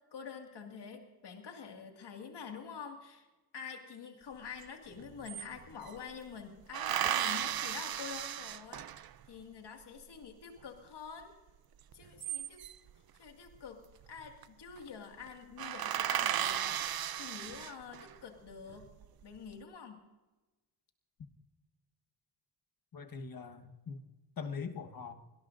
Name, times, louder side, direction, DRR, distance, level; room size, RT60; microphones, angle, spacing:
voice 1, 0.1-3.3 3.5-8.8 9.3-11.3 11.9-12.6 13.1-13.8 14.1-16.7 17.2-18.9 19.2-20.1, left 6 dB, 70° left, 3 dB, 2.2 m, -47 dB
sound 1, 4.6-4.7 4.9-6.0 6.7-9.3 11.9-12.9 14.1-14.4 14.8-14.9 15.2-15.3 15.6-18.1 18.7-19.4, right 11 dB, 60° right, 0.6 m, -35 dB
voice 2, 22.9-24.0 24.4-25.1, left 5 dB, 55° left, 6 dB, 1.4 m, -42 dB
24.5 x 18.5 x 2.6 m, 1.1 s
wide cardioid pair, 115°, 42 cm